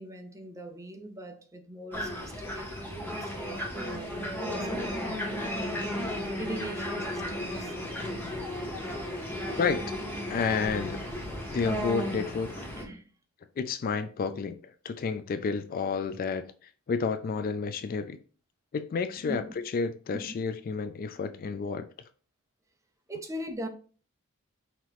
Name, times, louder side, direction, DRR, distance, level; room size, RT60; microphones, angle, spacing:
voice 1, 0.0-5.8 6.4-7.7 12.6-13.1 19.3-19.6 23.1-23.7, right 1 dB, 15° right, 0.6 m, -41 dB
sound 1, 1.9-12.8, left 1 dB, 10° left, 1.1 m, -34 dB
voice 2, 10.3-11.0 11.5-12.5 13.6-16.5 16.9-18.2 18.7-19.4 19.7-21.9, left 5 dB, 40° left, 0.3 m, -30 dB
5.7 x 2.9 x 3.0 m
head